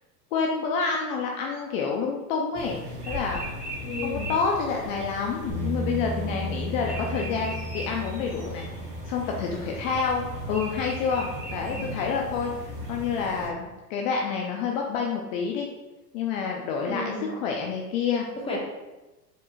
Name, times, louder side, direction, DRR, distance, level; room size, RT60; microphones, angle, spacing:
voice 1, 0.3-3.4 4.0-8.7 9.1-15.7 16.1-18.2, left 5 dB, 50° left, 0 dB, 0.7 m, -28 dB
sound 1, 2.5-13.5, equal, 15° right, 1.5 m, -37 dB
voice 2, 3.8-4.3 16.9-17.3 18.4-18.6, left 3 dB, 10° left, -4 dB, 1.4 m, -33 dB
sound 2, 5.5-11.7, equal, 35° right, 1.4 m, -36 dB
4.6 x 4.5 x 2.4 m, 1.1 s
hypercardioid pair, 105°, 49 cm